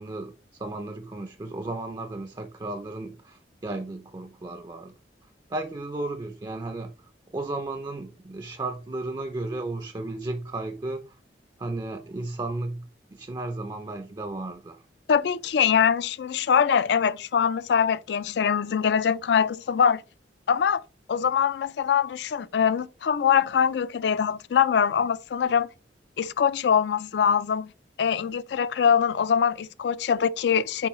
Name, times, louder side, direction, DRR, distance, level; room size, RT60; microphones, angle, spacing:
voice 1, 0.0-5.0 5.5-6.9 7.3-11.2 11.6-14.8, right 2 dB, 25° right, 0.4 m, -34 dB
voice 2, 15.1-20.0 20.5-20.8 21.1-25.7 26.2-27.7 28.0-30.9, left 7 dB, 65° left, 0.3 m, -23 dB
6.9 x 4.7 x 3.0 m
head